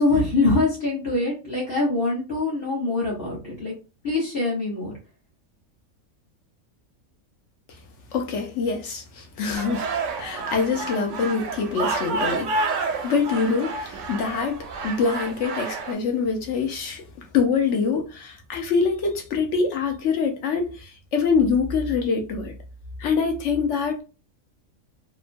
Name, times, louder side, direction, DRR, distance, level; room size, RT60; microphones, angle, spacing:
voice 1, 0.0-3.7 4.0-4.9, left 2 dB, 45° left, 1.0 m, -23 dB
voice 2, 8.1-9.9 10.2-12.5 13.0-14.6 14.8-17.0 17.3-22.5 23.0-24.0, left 5 dB, 65° left, 0.8 m, -24 dB
sound 1, 9.5-15.9, right 3 dB, 70° right, 0.9 m, -29 dB
2.9 x 2.1 x 2.5 m
omnidirectional pair, 1.5 m